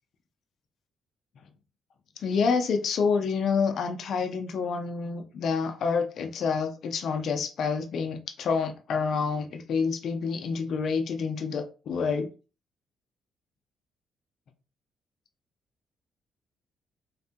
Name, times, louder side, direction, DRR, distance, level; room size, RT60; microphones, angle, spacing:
voice 1, 2.2-12.3, left 5 dB, 65° left, 0.5 m, -28 dB
3.2 x 2.2 x 2.8 m
cardioid pair, 90°, 0 cm